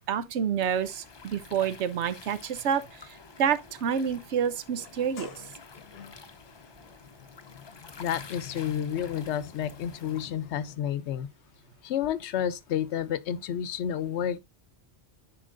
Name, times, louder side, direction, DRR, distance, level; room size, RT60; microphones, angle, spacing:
voice 1, 0.1-5.4, right 8 dB, 90° right, 1.0 m, -28 dB
sound 1, 0.6-10.3, left 4 dB, 30° left, 0.5 m, -49 dB
Sliding door, 4.8-10.8, left 8 dB, 65° left, 0.9 m, -48 dB
voice 2, 8.0-11.3 11.8-14.4, left 9 dB, 85° left, 0.9 m, -30 dB
10.0 x 4.5 x 2.5 m
omnidirectional pair, 1.1 m